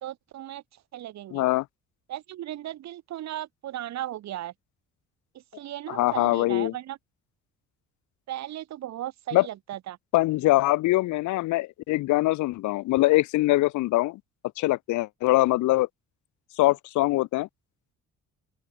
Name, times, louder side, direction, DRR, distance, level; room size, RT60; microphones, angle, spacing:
voice 1, 0.0-0.6 0.9-1.4 2.1-4.5 5.5-7.0 8.3-10.0, right 13 dB, 65° right, 0.9 m, -36 dB
voice 2, 1.3-1.6 5.9-6.7 9.3-9.5 10.1-14.2 14.6-15.9 16.6-17.5, left 18 dB, 75° left, 0.5 m, -23 dB
open air
cardioid pair, 90°, 30 cm